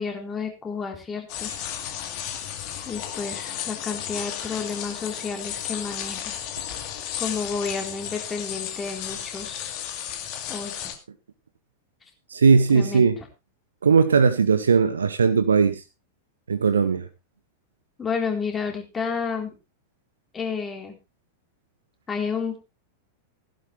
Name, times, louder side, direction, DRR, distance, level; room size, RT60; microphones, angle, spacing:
voice 1, 0.0-1.5 2.9-6.3 7.2-9.7 10.5-10.9 12.7-13.1 18.0-19.5 20.3-20.9 22.1-22.6, left 5 dB, 20° left, 3.9 m, -31 dB
sound 1, 1.3-11.0, left 10 dB, 45° left, 2.4 m, -33 dB
voice 2, 12.3-13.2 13.8-15.8 16.5-17.1, right 5 dB, 70° right, 0.9 m, -18 dB
16.0 x 12.0 x 3.3 m
figure-of-eight pair, 90°, 0 cm